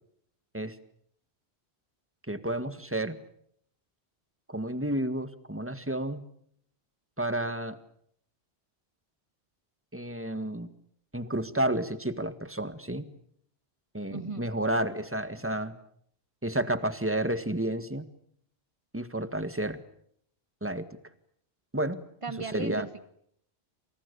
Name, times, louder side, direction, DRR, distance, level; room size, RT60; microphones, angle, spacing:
voice 1, 2.3-3.2 4.5-6.2 7.2-7.8 9.9-10.7 11.1-13.1 13.9-15.8 16.4-18.1 18.9-19.8 20.6-20.9 21.7-22.0 22.4-22.9, right 1 dB, 10° right, 11 dB, 1.8 m, -31 dB
voice 2, 14.1-14.5 22.2-23.0, right 4 dB, 30° right, 10 dB, 2.0 m, -36 dB
28.0 x 28.0 x 6.9 m, 0.69 s
omnidirectional pair, 1.1 m